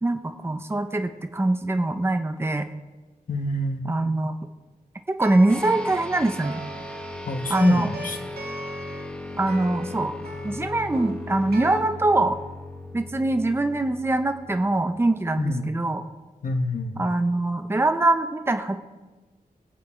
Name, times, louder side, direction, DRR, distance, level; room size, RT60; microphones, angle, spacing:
voice 1, 0.0-2.7 3.9-4.3 5.1-6.6 7.5-7.9 9.4-10.1 10.4-12.4 12.9-16.0 17.0-18.8, right 2 dB, 15° right, 7 dB, 0.8 m, -23 dB
voice 2, 3.3-3.8 7.2-8.2 15.4-15.7 16.4-17.1, left 2 dB, 60° left, 5 dB, 1.4 m, -27 dB
sound 1, 5.2-11.8, right 2 dB, 75° right, 2.1 m, -40 dB
sound 2, 5.5-15.2, left 2 dB, 5° left, 1.4 m, -38 dB
21.0 x 8.6 x 4.5 m, 1.2 s
wide cardioid pair, 145°, 16 cm